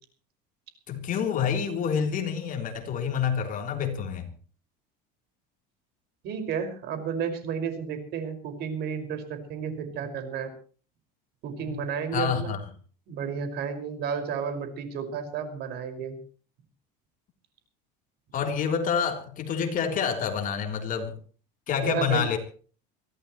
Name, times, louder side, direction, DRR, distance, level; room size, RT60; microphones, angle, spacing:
voice 1, 0.9-4.3 11.6-11.8 12.1-12.6 18.3-21.2 21.7-22.4, left 7 dB, 40° left, 3.6 m, -28 dB
voice 2, 6.2-10.5 11.4-12.6 13.1-16.2 21.8-22.2, right 7 dB, 50° right, 5.6 m, -32 dB
24.0 x 16.5 x 3.2 m
cardioid pair, 135°, 21 cm